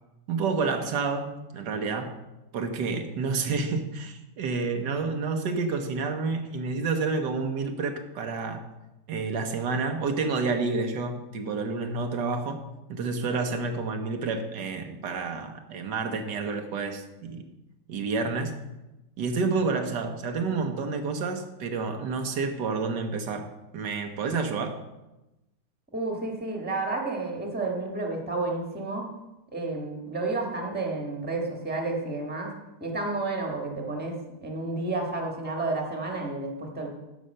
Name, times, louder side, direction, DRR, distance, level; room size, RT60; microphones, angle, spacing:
voice 1, 0.3-2.2 2.5-8.7 9.1-12.6 12.9-17.4 17.9-18.6 19.2-24.8, right 4 dB, 80° right, 5 dB, 1.6 m, -29 dB
voice 2, 25.9-29.0 29.5-32.5 32.8-36.9, right 3 dB, 5° right, 1 dB, 1.3 m, -31 dB
9.7 x 5.3 x 6.5 m, 0.99 s
omnidirectional pair, 1.8 m